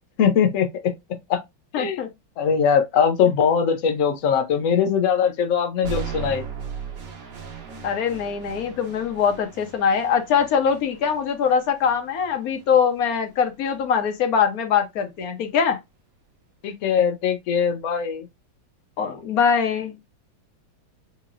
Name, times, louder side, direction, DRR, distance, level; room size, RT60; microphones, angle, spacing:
voice 1, 0.2-0.9 1.3-1.4 1.8-2.0 2.4-6.4 16.6-18.3, left 7 dB, 90° left, 0.7 m, -21 dB
voice 2, 1.7-2.1 7.8-15.8 19.0-20.0, left 7 dB, 60° left, 1.0 m, -22 dB
sound 1, 5.8-13.9, right 6 dB, 60° right, 1.6 m, -38 dB
4.4 x 2.8 x 2.4 m
omnidirectional pair, 2.3 m